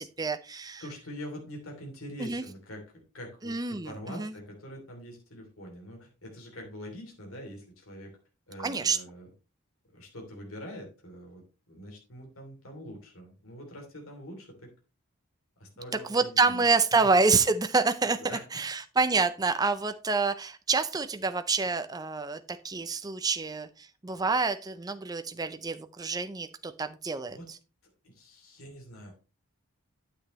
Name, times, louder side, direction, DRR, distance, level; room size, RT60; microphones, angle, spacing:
voice 1, 0.0-0.8 2.2-2.4 3.4-4.3 8.6-9.0 16.1-18.2 18.5-27.4, right 4 dB, 15° right, 9 dB, 0.5 m, -27 dB
voice 2, 0.8-8.1 8.5-9.3 9.9-14.7 15.6-16.6 17.0-17.1 18.0-18.6 27.3-27.5 28.0-29.1, equal, 70° left, 1 dB, 3.0 m, -44 dB
9.4 x 8.1 x 3.1 m, 0.32 s
head